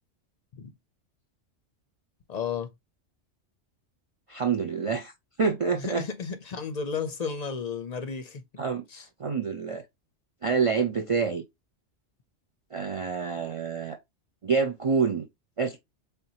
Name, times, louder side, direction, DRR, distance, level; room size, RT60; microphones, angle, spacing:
voice 1, 2.3-2.7 5.7-8.4 8.9-9.1, left 6 dB, 50° left, 0.5 m, -33 dB
voice 2, 4.3-5.1 5.4-6.0 8.6-8.8 9.2-9.8 10.4-11.4 12.7-14.0 14.4-15.3 15.6-15.8, right 5 dB, 60° right, 0.3 m, -27 dB
4.4 x 3.5 x 2.7 m
omnidirectional pair, 1.2 m